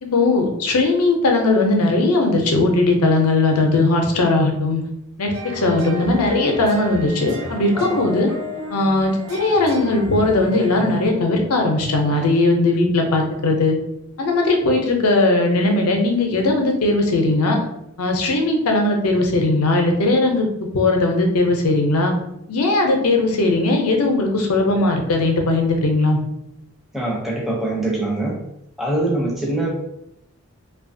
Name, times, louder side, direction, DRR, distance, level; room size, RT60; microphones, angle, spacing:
voice 1, 0.0-4.8 5.2-8.3 8.7-13.8 14.2-17.6 18.0-20.5 20.7-22.1 22.5-26.2, left 2 dB, 85° left, 3 dB, 0.6 m, -18 dB
sound 1, 5.3-11.1, equal, 55° right, 0.7 m, -34 dB
voice 2, 7.7-8.1 12.1-12.2 26.9-28.4 28.8-29.7, right 2 dB, ahead, -3 dB, 0.5 m, -23 dB
2.7 x 2.3 x 2.6 m, 0.81 s
head